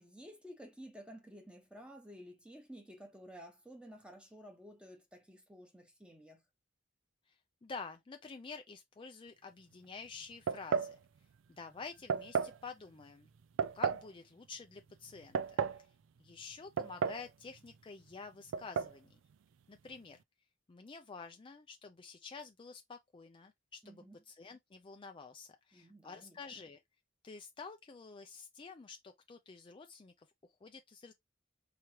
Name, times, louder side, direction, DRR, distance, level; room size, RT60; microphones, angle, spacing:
voice 1, 0.0-6.4 23.8-24.2 25.7-26.6, equal, 5° right, 1.0 m, -53 dB
voice 2, 7.6-11.0 11.6-13.3 13.7-15.9 16.2-19.2 19.7-20.2 20.7-26.8 27.2-30.3 30.6-31.1, left 4 dB, 25° left, 0.4 m, -49 dB
sound 1, 10.5-11.0 12.1-12.6 13.6-14.1 15.1-15.8 16.8-17.3 17.5-17.6 18.5-18.9, right 6 dB, 75° right, 0.3 m, -33 dB
4.8 x 3.1 x 2.8 m
head